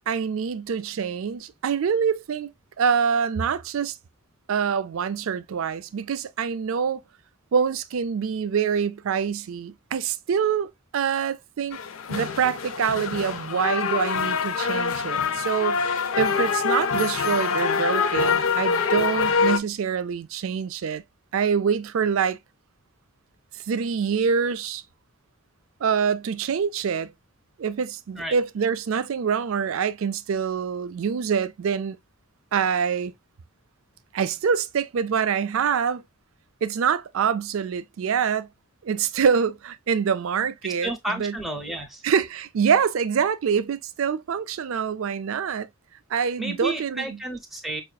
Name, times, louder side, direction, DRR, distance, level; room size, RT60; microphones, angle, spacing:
voice 1, 0.1-2.5 2.8-4.0 4.5-7.0 7.5-11.8 12.1-15.8 16.2-21.0 21.3-22.4 23.7-24.8 25.8-27.1 27.6-32.0 32.5-33.1 34.1-36.0 36.6-38.5 38.8-41.4 42.0-45.7 46.1-47.2, right 6 dB, 65° right, 0.4 m, -25 dB
sound 1, 11.7-19.6, left 5 dB, 65° left, 0.5 m, -25 dB
voice 2, 40.8-42.0 46.4-47.8, right 2 dB, ahead, 0.7 m, -31 dB
5.6 x 2.4 x 2.3 m
head